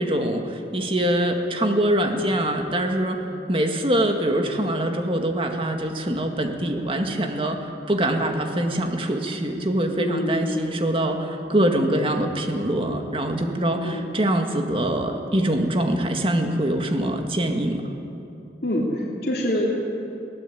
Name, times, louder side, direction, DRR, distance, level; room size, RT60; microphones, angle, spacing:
voice 1, 0.0-3.2 3.5-18.0, right 1 dB, 30° right, 4 dB, 1.9 m, -24 dB
voice 2, 10.0-10.7 13.8-14.0 18.6-19.7, left 1 dB, 60° left, -5 dB, 2.8 m, -25 dB
22.0 x 16.5 x 8.7 m, 3.0 s
head